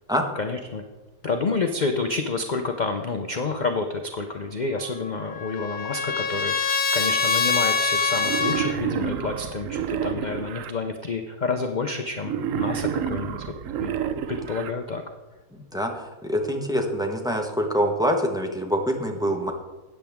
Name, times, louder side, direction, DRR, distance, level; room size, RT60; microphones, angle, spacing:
voice 1, 0.4-0.8 1.2-13.5 13.8-15.0, left 3 dB, 65° left, 5 dB, 0.4 m, -29 dB
Trumpet, 4.8-8.7, left 5 dB, 35° left, 0.9 m, -25 dB
Wild animals, 8.2-10.7 12.2-14.7, right 9 dB, 65° right, 0.9 m, -29 dB
voice 2, 15.5-19.5, equal, 5° right, 1 dB, 0.9 m, -25 dB
13.0 x 9.1 x 3.6 m, 1.2 s
omnidirectional pair, 1.7 m